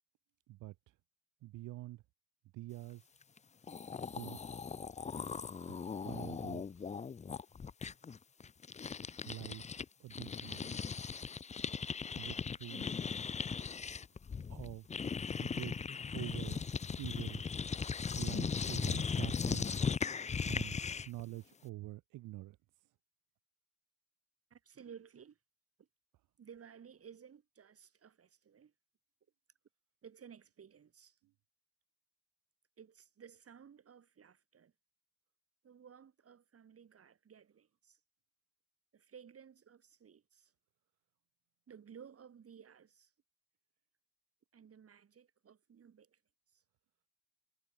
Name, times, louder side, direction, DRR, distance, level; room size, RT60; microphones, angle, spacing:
voice 1, 0.5-1.0 1.4-2.0 2.5-3.1 3.9-4.6 5.6-6.9 9.2-9.7 10.0-10.8 12.1-12.9 14.5-14.9 15.4-16.6 16.9-17.4 18.2-19.8 20.4-20.8 21.0-22.9 31.2-31.3, right 17 dB, 85° right, 1.0 m, -47 dB
sound 1, 3.4-3.5 3.6-9.8 10.1-21.2, left 6 dB, 25° left, 0.5 m, -38 dB
voice 2, 24.5-25.4 26.4-28.7 30.0-31.2 32.8-34.7 35.6-38.0 38.9-40.5 41.7-43.1 44.5-46.2 46.5-46.6, right 7 dB, 50° right, 6.0 m, -56 dB
cardioid pair, 90°, 30 cm